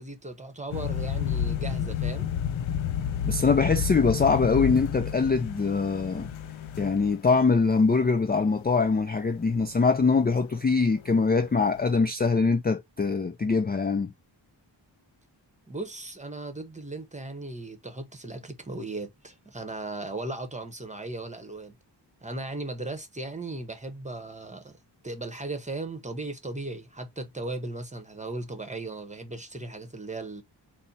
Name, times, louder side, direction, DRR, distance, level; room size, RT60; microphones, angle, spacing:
voice 1, 0.0-2.3 15.7-21.8 22.2-24.8 25.0-30.4, right 2 dB, 15° right, 1.0 m, -37 dB
sound 1, 0.7-10.1 10.3-10.7 11.0-11.3 11.6-11.8, left 9 dB, 90° left, 0.5 m, -31 dB
voice 2, 3.2-6.3 6.8-14.1, left 4 dB, 20° left, 0.4 m, -23 dB
4.2 x 2.2 x 4.0 m
wide cardioid pair, 85°, 46 cm